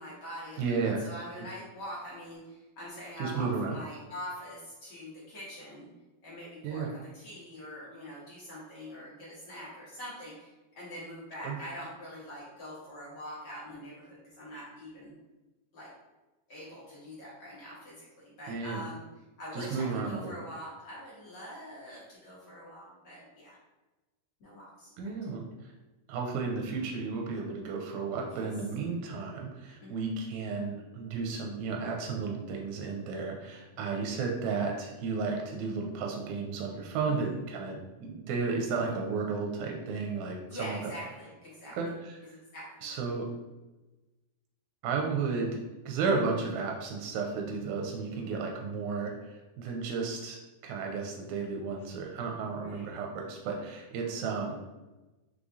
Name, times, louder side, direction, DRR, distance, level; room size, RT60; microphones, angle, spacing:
voice 1, 0.0-5.9 6.2-15.1 15.7-15.9 16.5-19.0 19.4-23.6 24.4-24.9 28.2-28.5 29.8-29.9 37.1-37.4 40.5-41.8 42.3-43.0 52.6-52.9, equal, 55° left, -7 dB, 1.2 m, -44 dB
voice 2, 0.6-1.0 3.2-3.8 6.6-6.9 11.4-11.6 18.5-18.8 19.5-20.3 25.0-25.7 26.1-40.9 41.7-42.4 42.8-43.3 44.8-45.6 45.9-50.4 50.6-54.6, right 4 dB, 90° right, 1 dB, 2.0 m, -33 dB
4.8 x 3.2 x 2.6 m, 1.1 s
omnidirectional pair, 3.4 m